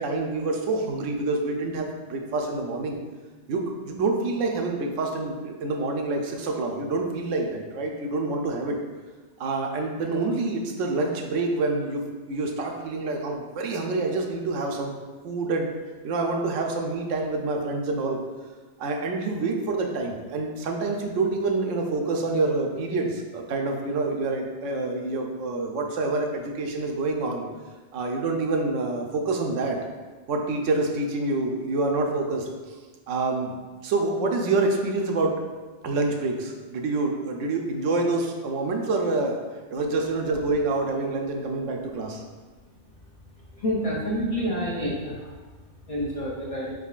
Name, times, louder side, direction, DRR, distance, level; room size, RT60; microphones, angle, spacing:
voice 1, 0.0-3.0 3.5-8.8 9.4-14.9 15.2-15.7 16.0-18.2 18.8-27.4 27.9-29.8 30.3-32.5 33.1-33.6 33.8-35.4 35.8-39.4 39.7-42.2, right 3 dB, 90° right, 2 dB, 0.9 m, -27 dB
voice 2, 43.5-45.4 45.9-46.7, equal, 40° left, -7 dB, 0.6 m, -28 dB
4.0 x 3.7 x 2.4 m, 1.3 s
omnidirectional pair, 1.2 m